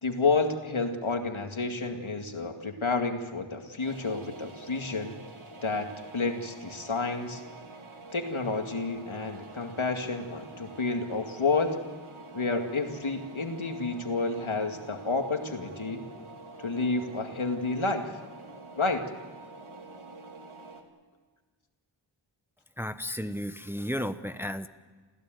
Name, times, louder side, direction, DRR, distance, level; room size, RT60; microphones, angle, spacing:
voice 1, 0.0-5.2 5.6-7.4 8.1-11.8 12.3-16.0 16.6-18.1 18.8-19.0, left 3 dB, 75° left, 5 dB, 2.3 m, -30 dB
sound 1, 3.8-20.8, right 3 dB, 80° right, 2.7 m, -47 dB
voice 2, 22.8-24.7, equal, 5° right, 10 dB, 1.0 m, -33 dB
28.0 x 15.5 x 9.3 m, 1.4 s
wide cardioid pair, 50°, 48 cm